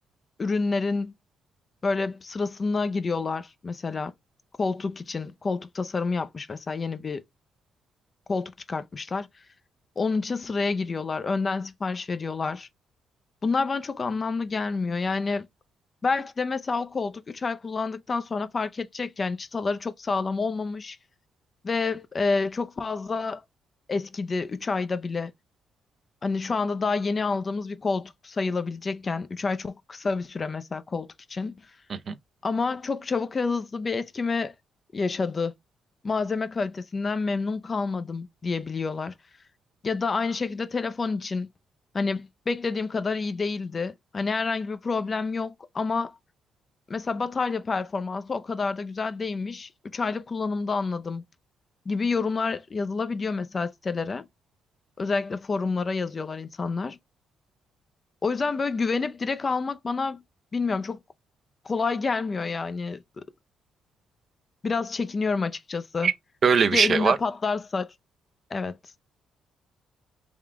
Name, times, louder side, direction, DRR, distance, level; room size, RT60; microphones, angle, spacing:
voice 1, 0.4-1.1 1.8-4.1 4.6-7.2 8.3-9.3 10.0-12.7 13.4-15.5 16.0-21.0 21.6-23.4 23.9-25.3 26.2-31.6 32.4-34.5 34.9-35.5 36.0-39.1 39.8-41.5 41.9-46.2 46.9-51.2 51.9-54.3 55.0-57.0 58.2-60.2 60.5-61.0 61.7-63.0 64.6-66.1 66.7-67.9 68.5-68.8, left 4 dB, 35° left, 0.5 m, -28 dB
voice 2, 66.4-67.2, right 6 dB, 50° right, 0.5 m, -21 dB
3.6 x 2.4 x 3.3 m
cardioid pair, 90°, 0 cm